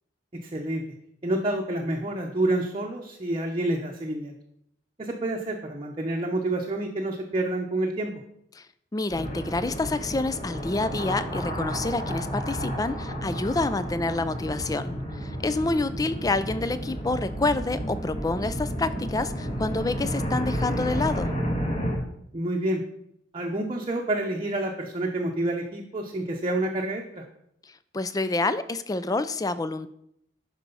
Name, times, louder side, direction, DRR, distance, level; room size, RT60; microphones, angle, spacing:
voice 1, 0.3-0.8 1.2-4.3 5.0-8.1 15.5-15.7 22.3-22.8 23.3-27.2, right 1 dB, 30° right, 0 dB, 0.9 m, -28 dB
voice 2, 8.9-21.3 27.9-29.9, left 3 dB, 20° left, 13 dB, 0.4 m, -28 dB
sound 1, 9.1-22.0, equal, 35° left, 2.3 m, -31 dB
11.0 x 4.7 x 5.4 m, 0.74 s
head